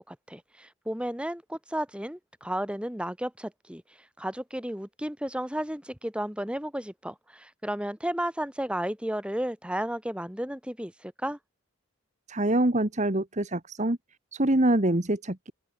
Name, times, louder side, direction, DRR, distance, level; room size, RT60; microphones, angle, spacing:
voice 1, 0.0-3.8 4.2-11.4, equal, 5° right, 3.6 m, -33 dB
voice 2, 12.3-14.0 14.3-15.5, right 1 dB, 35° right, 1.6 m, -25 dB
open air
head